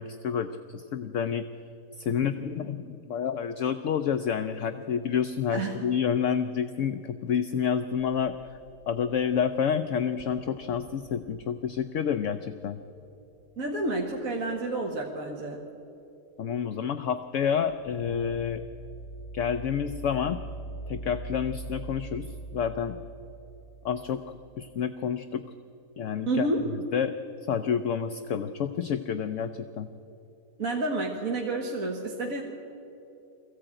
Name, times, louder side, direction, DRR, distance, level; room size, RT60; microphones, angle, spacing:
voice 1, 0.0-1.5 2.0-8.3 8.9-12.8 16.4-18.6 19.3-20.4 20.9-22.3 22.5-23.0 23.8-24.2 24.6-25.4 26.0-26.5 26.9-27.1 27.5-29.9, left 7 dB, 60° left, 9 dB, 0.9 m, -29 dB
sound 1, 8.0-9.4 9.7-9.8 10.2-14.6 17.7-24.7, right 2 dB, 45° left, 1.4 m, -43 dB
voice 2, 13.6-15.6 26.3-26.6 30.6-32.4, right 2 dB, 60° right, 0 dB, 1.8 m, -29 dB
22.0 x 15.0 x 8.9 m, 2.9 s
omnidirectional pair, 1.7 m